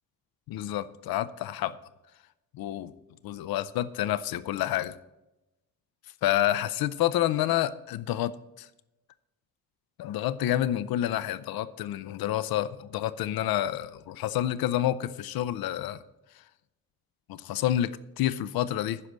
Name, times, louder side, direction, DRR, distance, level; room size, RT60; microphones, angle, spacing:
voice 1, 0.5-1.8 2.5-2.9 3.2-5.0 6.2-8.7 10.0-16.0 17.3-19.0, left 12 dB, 85° left, 16 dB, 0.6 m, -29 dB
9.8 x 6.5 x 7.3 m, 0.96 s
cardioid pair, 110°, 35 cm